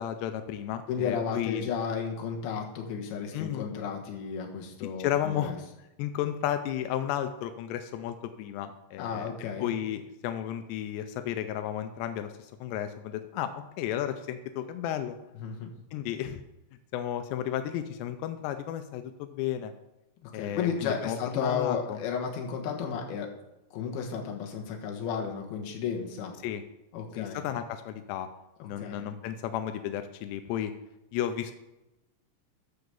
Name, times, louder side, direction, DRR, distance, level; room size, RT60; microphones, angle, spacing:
voice 1, 0.0-1.7 3.3-3.7 4.8-5.5 6.0-9.3 9.6-15.2 15.9-16.4 16.9-19.7 20.3-22.0 26.4-26.6 27.2-28.3 28.6-30.7 31.1-31.5, left 11 dB, 90° left, 9 dB, 2.8 m, -33 dB
voice 2, 0.9-5.6 9.0-9.7 15.4-15.7 20.2-23.3 23.7-26.3 26.9-27.4 28.6-29.0, left 6 dB, 70° left, 1 dB, 3.1 m, -33 dB
12.0 x 4.8 x 7.0 m, 0.96 s
omnidirectional pair, 4.9 m